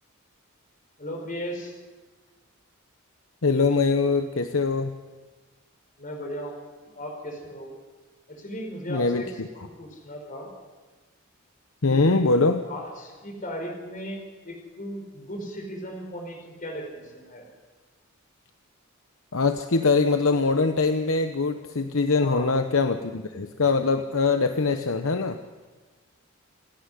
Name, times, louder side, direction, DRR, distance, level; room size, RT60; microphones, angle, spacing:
voice 1, 1.0-1.7 6.0-7.7 8.3-10.5 12.6-17.5 22.2-22.5, equal, 40° left, 2 dB, 4.8 m, -37 dB
voice 2, 3.4-4.9 8.9-9.5 11.8-12.6 19.3-25.4, left 4 dB, 70° left, 8 dB, 0.9 m, -23 dB
28.0 x 10.5 x 9.8 m, 1.3 s
head